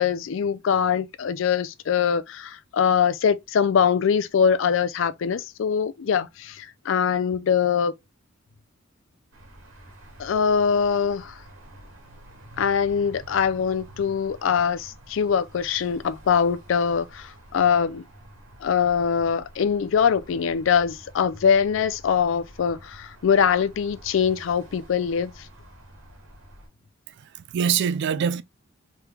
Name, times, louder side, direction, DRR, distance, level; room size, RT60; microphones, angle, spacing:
voice 1, 0.0-7.9 10.2-11.3 12.6-18.0 18.6-25.3, left 7 dB, 70° left, 0.4 m, -23 dB
sound 1, 9.3-26.7, right 1 dB, 85° right, 1.6 m, -48 dB
voice 2, 27.1-28.4, right 7 dB, 60° right, 0.3 m, -25 dB
3.5 x 3.1 x 2.2 m
head